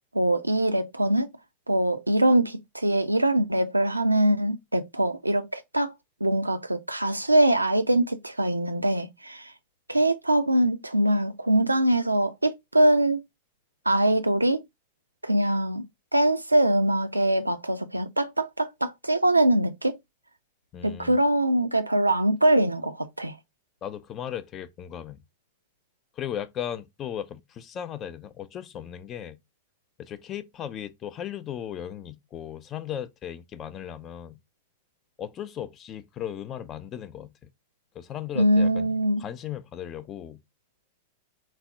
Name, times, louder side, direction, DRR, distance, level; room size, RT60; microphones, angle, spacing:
voice 1, 0.1-1.3 1.7-5.9 6.2-9.5 9.9-13.2 13.9-14.6 15.2-15.8 16.1-20.0 20.8-23.3 38.4-39.2, right 1 dB, 85° right, 0.4 m, -23 dB
voice 2, 20.7-21.2 23.8-25.2 26.2-29.4 30.0-34.4 35.2-37.3 37.9-38.9 39.2-40.4, left 10 dB, 30° left, 0.4 m, -36 dB
4.0 x 2.1 x 3.4 m
figure-of-eight pair, 90°, 0 cm